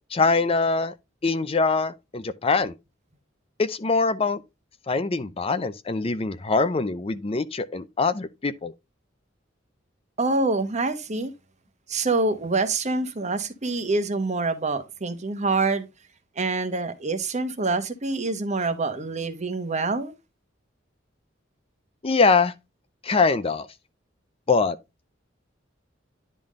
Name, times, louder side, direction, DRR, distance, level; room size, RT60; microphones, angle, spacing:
voice 1, 0.1-0.9 1.2-2.7 3.6-4.4 4.9-8.7 22.0-22.5 23.0-23.7 24.5-24.8, left 4 dB, 30° left, 0.5 m, -23 dB
voice 2, 10.2-11.3 11.9-15.9 16.4-20.1, right 3 dB, 35° right, 1.1 m, -26 dB
10.5 x 3.7 x 3.7 m
head